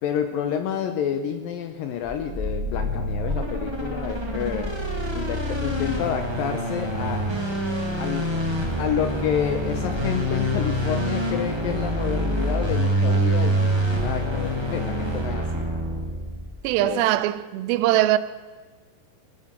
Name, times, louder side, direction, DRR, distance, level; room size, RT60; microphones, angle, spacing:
voice 1, 0.0-4.7 5.1-7.2 8.0-8.3 8.8-15.7 16.8-17.1, left 8 dB, 75° left, 2.2 m, -29 dB
sound 1, 2.0-16.6, equal, 25° right, 0.5 m, -26 dB
voice 2, 16.6-18.2, right 15 dB, 85° right, 2.8 m, -21 dB
18.5 x 8.9 x 7.4 m
omnidirectional pair, 4.8 m